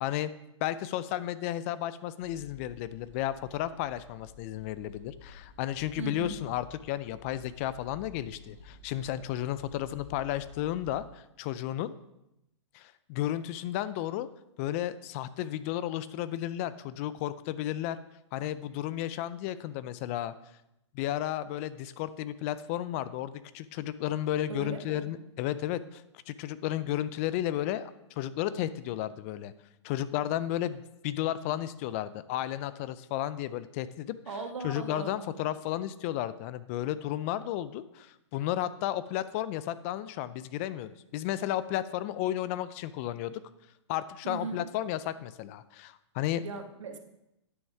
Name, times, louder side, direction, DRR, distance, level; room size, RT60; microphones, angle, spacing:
voice 1, 0.6-11.9 12.7-14.3 14.6-18.0 18.3-20.3 20.9-26.0 26.3-27.9 28.2-29.5 29.8-34.2 34.6-43.4 43.9-46.4, left 12 dB, 30° left, 15 dB, 0.4 m, -33 dB
sound 1, 2.2-11.0, left 4 dB, 90° left, 3.7 m, -52 dB
voice 2, 6.0-6.4 24.5-25.1 34.3-35.2 44.2-44.6 46.4-47.0, right 4 dB, 80° right, 5 dB, 1.5 m, -38 dB
9.3 x 6.2 x 4.8 m, 0.85 s
hypercardioid pair, 150°, 16 cm